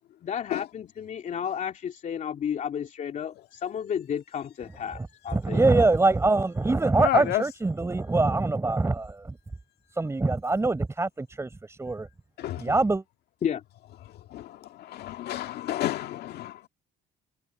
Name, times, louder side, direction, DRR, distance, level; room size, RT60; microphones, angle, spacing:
voice 1, 0.2-5.6 13.4-13.6, left 8 dB, 50° left, 2.8 m, -32 dB
voice 2, 4.9-9.4 9.9-12.1 12.6-13.0, right 3 dB, 15° right, 4.3 m, -24 dB
voice 3, 7.0-7.4 12.4-12.7 14.1-16.6, left 13 dB, 70° left, 1.8 m, -30 dB
cardioid pair, 110°, 17 cm